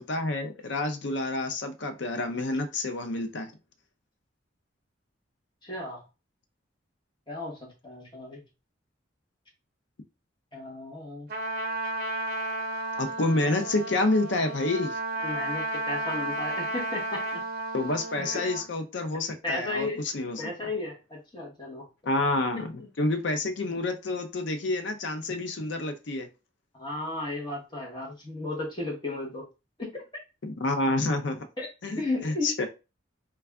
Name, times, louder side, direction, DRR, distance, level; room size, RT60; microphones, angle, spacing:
voice 1, 0.0-3.5 13.0-15.0 17.7-20.5 22.1-22.7 23.0-26.3 30.4-31.5 31.8-32.7, left 2 dB, 65° left, 7 dB, 0.6 m, -28 dB
voice 2, 5.6-6.0 7.3-8.4 10.5-11.3 15.2-17.4 18.2-18.5 19.4-20.0 20.4-21.9 22.5-22.9 26.7-29.5 29.8-30.0 31.6-31.7 32.0-32.5, left 2 dB, 25° left, -2 dB, 1.1 m, -34 dB
Trumpet, 11.3-18.6, right 1 dB, 50° right, 0.7 m, -33 dB
3.3 x 2.3 x 3.4 m, 0.29 s
head